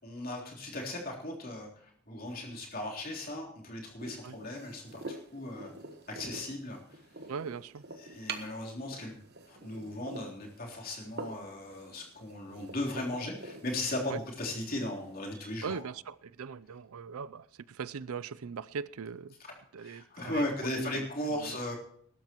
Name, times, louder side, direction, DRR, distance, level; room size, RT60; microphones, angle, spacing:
voice 1, 0.0-5.7 6.1-7.1 8.0-9.2 9.5-15.8 19.4-21.8, left 1 dB, 40° left, 3.5 m, -37 dB
sound 1, 4.0-15.8, right 3 dB, 50° right, 1.3 m, -47 dB
voice 2, 7.3-7.8 14.1-14.2 15.6-19.3 19.7-21.6, right 6 dB, 80° right, 0.5 m, -40 dB
21.5 x 12.5 x 3.0 m
head